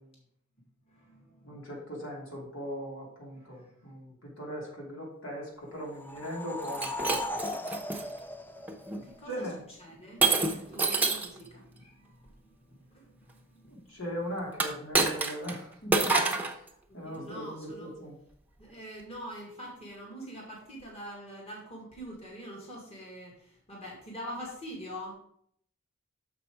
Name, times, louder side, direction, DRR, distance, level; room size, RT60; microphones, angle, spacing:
voice 1, 0.9-1.7 3.5-3.6 8.1-9.5 9.8-14.0 16.9-17.9 18.6-25.1, equal, 30° left, -2 dB, 2.2 m, -45 dB
voice 2, 1.4-7.4 9.3-9.6 13.7-16.2 16.9-18.2, equal, 80° left, -3 dB, 3.0 m, -39 dB
sound 1, 5.8-9.4, left 1 dB, 10° left, 0.4 m, -37 dB
Shatter, 6.6-8.0 8.7-9.0 10.2-11.4 14.5-15.6 15.9-16.5, right 3 dB, 10° right, 0.9 m, -27 dB
7.1 x 5.9 x 5.0 m, 0.67 s
head